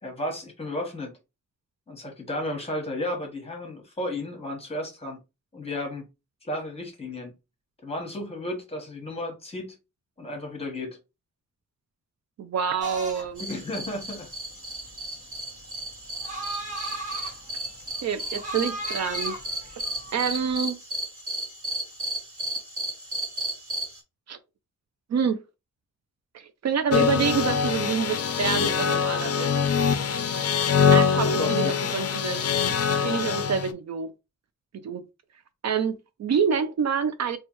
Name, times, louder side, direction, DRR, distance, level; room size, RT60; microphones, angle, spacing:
voice 1, 0.0-1.1 1.9-5.2 5.5-6.1 6.4-7.3 7.8-9.7 10.2-11.0 13.4-14.3 30.9-32.0, left 1 dB, 20° left, 1.2 m, -33 dB
voice 2, 12.4-13.4 18.0-19.4 19.7-19.8 20.1-20.8 24.3-24.4 25.1-25.4 26.3-29.5 30.9-32.4 32.9-34.1 34.7-35.0 35.6-37.4, right 7 dB, 65° right, 0.4 m, -27 dB
sound 1, 12.8-20.5, right 2 dB, 25° right, 1.2 m, -37 dB
sound 2, 13.4-24.0, right 1 dB, 45° right, 1.4 m, -34 dB
sound 3, 26.9-33.7, left 6 dB, 55° left, 0.4 m, -23 dB
4.3 x 2.3 x 3.0 m
wide cardioid pair, 175°, 30 cm